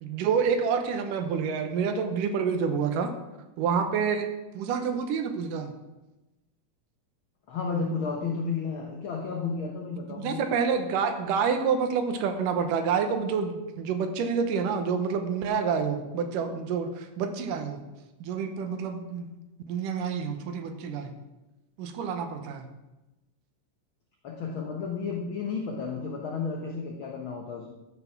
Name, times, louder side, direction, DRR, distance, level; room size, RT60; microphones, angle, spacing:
voice 1, 0.0-3.1 3.6-4.3 4.5-5.7 10.1-17.8 18.2-19.3 19.7-21.1 21.8-22.7, right 6 dB, 80° right, 7 dB, 2.5 m, -28 dB
voice 2, 7.5-10.4 24.2-27.7, left 5 dB, 80° left, 1 dB, 1.1 m, -32 dB
13.0 x 5.9 x 5.9 m, 1.0 s
omnidirectional pair, 3.8 m